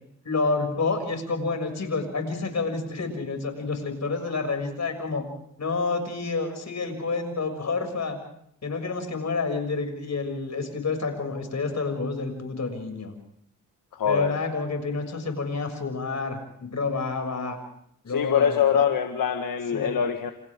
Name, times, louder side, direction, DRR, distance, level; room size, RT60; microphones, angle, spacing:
voice 1, 0.2-5.3 5.6-8.2 8.6-13.1 14.0-17.6 18.0-18.8 19.7-19.9, left 4 dB, 55° left, 5 dB, 6.9 m, -29 dB
voice 2, 13.9-14.4 18.1-20.3, left 7 dB, 80° left, 5 dB, 1.7 m, -23 dB
29.5 x 28.5 x 3.7 m, 0.69 s
cardioid pair, 65°, 33 cm